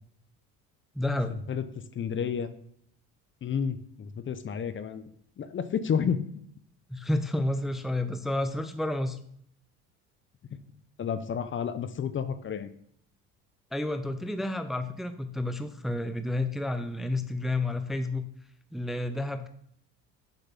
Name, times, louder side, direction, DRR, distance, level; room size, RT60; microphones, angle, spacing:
voice 1, 0.9-1.3 6.9-9.2 13.7-18.3 18.7-19.5, left 2 dB, ahead, 9 dB, 0.6 m, -30 dB
voice 2, 1.9-2.5 3.4-5.0 5.4-6.2 11.0-12.7, left 7 dB, 35° left, 12 dB, 0.7 m, -30 dB
7.1 x 5.8 x 5.7 m, 0.66 s
supercardioid pair, 100°, 34 cm